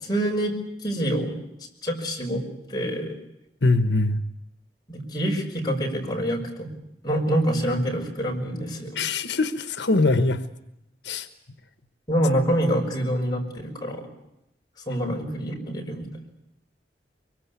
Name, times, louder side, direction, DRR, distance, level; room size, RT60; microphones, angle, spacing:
voice 1, 0.0-1.4 1.8-2.4 2.7-3.2 4.9-6.7 7.0-9.0 12.1-14.0 14.9-16.1, equal, 25° left, 0 dB, 5.8 m, -26 dB
voice 2, 3.6-4.2 8.9-10.4 11.0-11.3, left 2 dB, 85° left, 10 dB, 1.2 m, -22 dB
24.0 x 23.0 x 8.3 m, 0.86 s
head